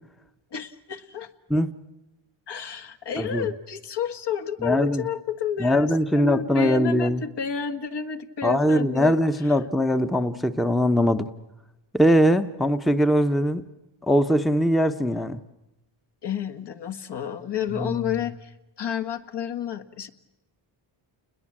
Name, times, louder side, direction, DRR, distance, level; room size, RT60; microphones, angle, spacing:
voice 1, 0.5-1.3 2.5-9.2 16.2-20.1, left 7 dB, 55° left, 7 dB, 1.8 m, -31 dB
voice 2, 3.2-3.5 4.6-5.0 5.6-7.2 8.4-11.3 11.9-13.6 14.0-15.4 17.8-18.0, equal, ahead, 9 dB, 0.9 m, -21 dB
29.5 x 21.5 x 7.4 m, 0.98 s
cardioid pair, 110°, 48 cm